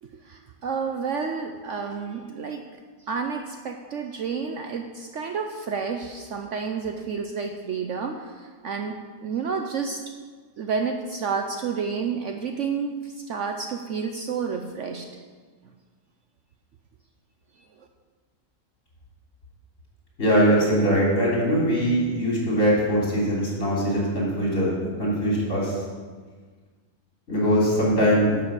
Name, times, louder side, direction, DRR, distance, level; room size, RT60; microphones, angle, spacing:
voice 1, 0.0-2.6 3.1-10.1 10.6-15.1 17.8-17.9, right 5 dB, 60° right, 4 dB, 0.9 m, -30 dB
voice 2, 20.2-25.8 27.3-28.4, equal, 55° left, -5 dB, 3.9 m, -22 dB
11.0 x 6.0 x 7.3 m, 1.5 s
omnidirectional pair, 1.7 m